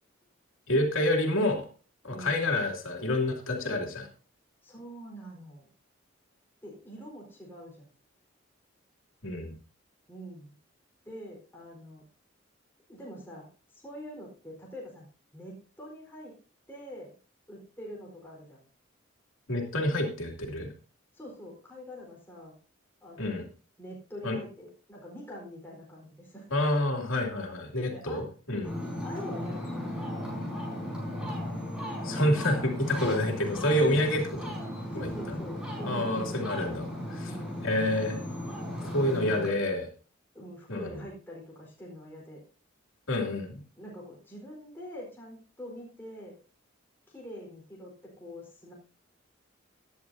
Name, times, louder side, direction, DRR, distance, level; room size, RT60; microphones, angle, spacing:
voice 1, 0.7-1.7 2.0-4.1 9.2-9.5 19.5-20.7 23.2-23.4 24.2-24.4 26.5-28.7 32.0-34.5 34.9-35.4 35.8-37.3 37.6-38.2 38.9-39.9 40.7-40.9 43.1-43.6, left 1 dB, 90° left, 1 dB, 2.7 m, -28 dB
voice 2, 2.1-2.5 4.6-5.7 6.6-7.9 10.1-10.6 11.0-12.0 12.9-13.5 13.7-15.1 15.3-16.3 16.7-17.1 17.5-18.6 21.1-22.6 23.0-23.4 23.8-26.5 27.9-28.2 29.0-29.8 34.9-36.4 37.2-37.6 38.8-39.2 40.3-42.4 43.8-46.3 47.1-48.7, equal, 10° left, -4 dB, 4.3 m, -44 dB
Ocean, 28.6-39.5, left 1 dB, 5° right, 4.7 m, -36 dB
16.5 x 10.5 x 2.7 m, 0.37 s
head